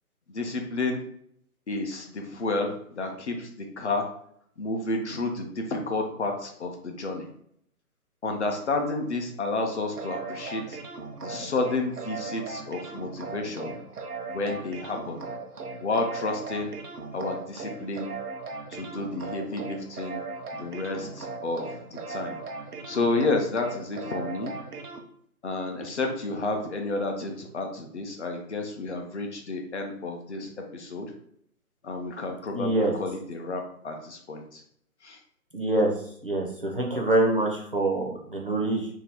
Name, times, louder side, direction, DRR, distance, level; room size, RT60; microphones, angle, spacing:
voice 1, 0.3-1.0 1.7-4.1 4.6-7.3 8.2-10.8 11.2-13.8 14.3-15.2 15.8-16.7 17.1-18.1 18.7-20.2 20.5-22.4 22.8-24.5 25.4-31.1 31.8-34.6 35.0-35.2, left 3 dB, 50° left, 3 dB, 0.6 m, -31 dB
sound 1, 9.9-25.0, right 4 dB, 80° right, 0.7 m, -38 dB
voice 2, 32.5-32.9 35.5-35.9 36.2-38.9, right 2 dB, 40° right, -1 dB, 0.4 m, -25 dB
2.7 x 2.2 x 3.3 m, 0.68 s
figure-of-eight pair, 155°, 45 cm